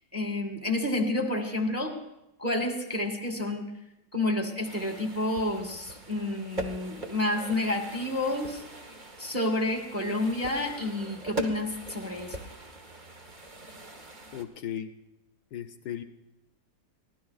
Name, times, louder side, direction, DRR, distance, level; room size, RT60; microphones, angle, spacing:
voice 1, 0.0-1.9 2.4-3.7 4.1-8.6 9.2-12.4, left 1 dB, 10° right, 3 dB, 1.3 m, -30 dB
sound 1, 4.6-14.4, right 1 dB, 30° right, 1.1 m, -41 dB
voice 2, 14.3-14.9 15.5-16.0, left 10 dB, 75° left, 7 dB, 1.2 m, -36 dB
23.0 x 16.0 x 2.4 m, 0.90 s
omnidirectional pair, 1.9 m